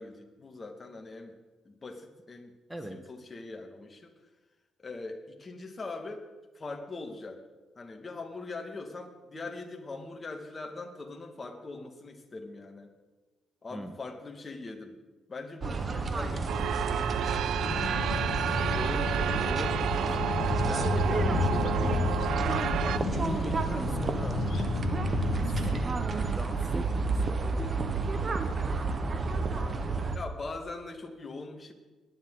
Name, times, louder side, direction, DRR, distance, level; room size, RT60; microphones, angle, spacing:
voice 1, 0.0-1.4 1.6-2.5 2.9-4.1 4.8-6.3 6.5-7.4 7.8-12.9 13.6-15.0 15.3-17.7 29.5-29.8 30.1-31.7, left 3 dB, 30° left, 3 dB, 2.1 m, -42 dB
voice 2, 2.7-3.0 13.7-13.9 18.6-20.3 20.6-22.2 22.8-24.4 25.5-28.1, equal, 5° right, 8 dB, 1.4 m, -40 dB
sound 1, 15.6-30.2, right 4 dB, 40° right, 1.3 m, -31 dB
sound 2, 16.5-23.0, right 10 dB, 75° right, 0.4 m, -31 dB
sound 3, 17.6-25.8, left 4 dB, 65° left, 1.7 m, -32 dB
20.5 x 10.5 x 4.0 m, 1.2 s
cardioid pair, 90°, 0 cm